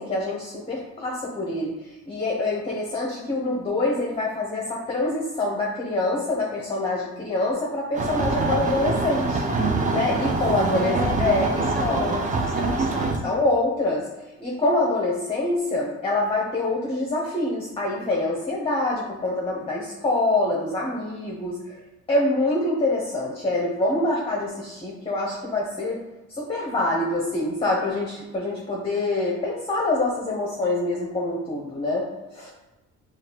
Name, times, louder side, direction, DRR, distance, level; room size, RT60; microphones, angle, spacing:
voice 1, 0.0-9.4 9.9-10.9 11.2-12.2 13.2-14.1 14.4-21.8 22.1-26.0 26.3-32.5, left 2 dB, 20° left, -3 dB, 0.7 m, -25 dB
sound 1, 7.9-13.2, right 3 dB, 25° right, 0.5 m, -24 dB
voice 2, 10.7-11.3 11.6-13.4, left 1 dB, ahead, -2 dB, 1.1 m, -33 dB
5.0 x 2.4 x 2.9 m, 1.0 s
cardioid pair, 90°, 30 cm